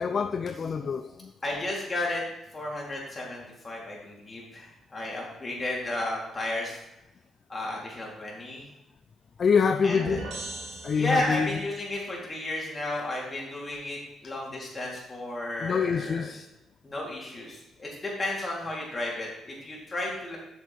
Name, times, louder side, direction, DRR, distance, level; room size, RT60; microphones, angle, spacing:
voice 1, 0.0-1.3 9.4-10.3 10.8-11.5 15.6-16.5, left 6 dB, 50° left, 10 dB, 0.4 m, -26 dB
voice 2, 1.4-2.2 2.5-6.8 7.5-8.6 9.8-10.2 10.9-16.3 16.8-20.4, left 1 dB, 30° left, -3 dB, 3.5 m, -33 dB
sound 1, 10.0-11.7, right 2 dB, 75° right, 2.5 m, -39 dB
8.3 x 6.5 x 4.4 m, 0.93 s
cardioid pair, 70°, 0 cm